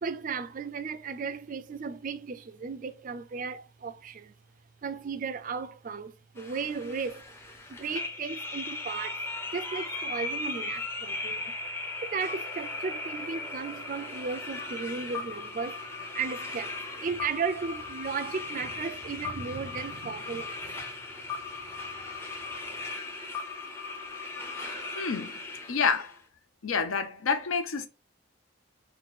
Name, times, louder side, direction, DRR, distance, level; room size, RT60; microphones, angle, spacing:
voice 1, 0.0-4.3 4.8-7.3 7.7-9.2 9.5-11.5 12.0-20.8, right 5 dB, 40° right, 0.3 m, -35 dB
sound 1, 6.4-26.1, left 3 dB, 10° left, 0.5 m, -38 dB
voice 2, 24.6-25.3 25.7-26.1 26.6-27.9, left 5 dB, 75° left, 0.6 m, -29 dB
3.9 x 2.2 x 4.0 m
head